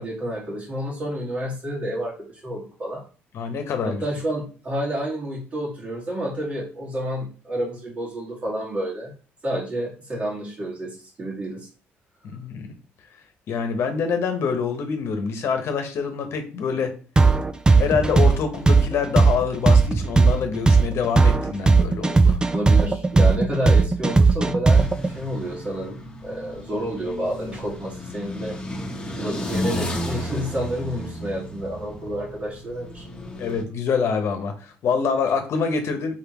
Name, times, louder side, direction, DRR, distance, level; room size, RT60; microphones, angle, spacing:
voice 1, 0.0-2.1 2.4-3.0 3.9-9.1 9.4-11.7 22.5-28.6 29.2-33.0, equal, 35° right, -6 dB, 1.8 m, -29 dB
voice 2, 3.3-4.0 12.2-12.7 13.5-16.9 17.8-22.4 33.4-36.1, left 6 dB, 65° left, 6 dB, 1.0 m, -25 dB
sound 1, 17.2-25.1, right 4 dB, 15° right, 0.4 m, -16 dB
sound 2, 24.7-33.6, left 1 dB, 20° left, 1.1 m, -33 dB
4.5 x 3.6 x 3.0 m, 0.37 s
cardioid pair, 95°, 5 cm